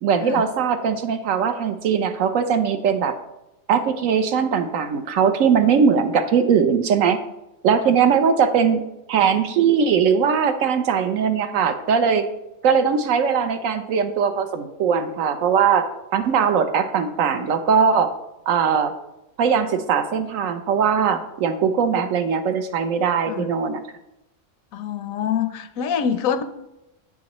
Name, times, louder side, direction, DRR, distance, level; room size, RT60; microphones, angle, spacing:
voice 1, 0.0-3.2 3.7-7.2 7.6-8.8 9.1-12.2 12.6-15.9 16.1-18.1 18.5-18.9 19.4-23.8, right 6 dB, 75° right, 8 dB, 1.1 m, -20 dB
voice 2, 24.7-26.4, left 8 dB, 90° left, 10 dB, 1.0 m, -25 dB
8.6 x 6.2 x 3.0 m, 0.92 s
omnidirectional pair, 1.4 m